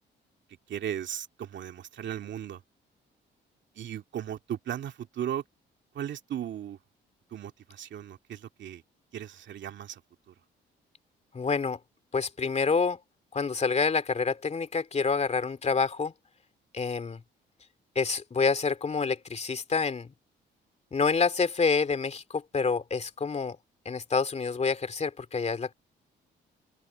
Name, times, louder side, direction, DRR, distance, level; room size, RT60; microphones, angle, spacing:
voice 1, 0.7-2.6 3.8-5.4 5.9-6.8 7.3-8.8 9.1-10.0 10.3-10.4, right 10 dB, 65° right, 2.4 m, -36 dB
voice 2, 11.3-11.8 12.1-13.0 13.3-16.1 16.7-17.2 17.9-20.1 20.9-23.6 23.8-25.7, left 5 dB, 35° left, 2.6 m, -27 dB
open air
cardioid pair, 90°, 20 cm